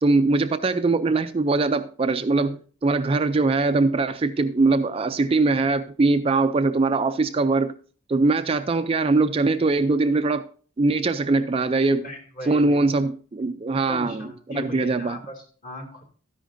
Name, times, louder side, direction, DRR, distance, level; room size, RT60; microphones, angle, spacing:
voice 1, 0.0-7.7 8.1-10.5 10.8-12.1 12.4-15.2, right 3 dB, 25° right, 0.4 m, -22 dB
voice 2, 12.0-12.8 13.9-16.0, left 1 dB, 40° left, 2.4 m, -37 dB
13.0 x 10.0 x 2.6 m
head